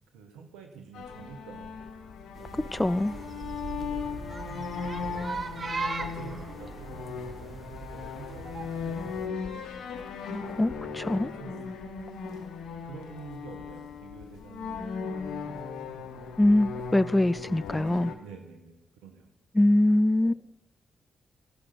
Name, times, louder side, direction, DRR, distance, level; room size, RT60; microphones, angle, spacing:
voice 1, 0.0-1.8 2.8-5.7 5.9-9.8 10.8-11.7 12.8-16.3 17.3-19.3 20.2-20.3, right 5 dB, 85° right, 1.5 m, -48 dB
sound 1, 0.9-18.1, left 5 dB, 80° left, 1.1 m, -38 dB
sound 2, 2.3-9.3, right 4 dB, 50° right, 1.2 m, -39 dB
voice 2, 2.6-3.1 10.6-11.3 16.4-18.1 19.6-20.3, left 1 dB, 15° left, 0.3 m, -23 dB
15.5 x 6.7 x 5.9 m
hypercardioid pair, 40°, 0 cm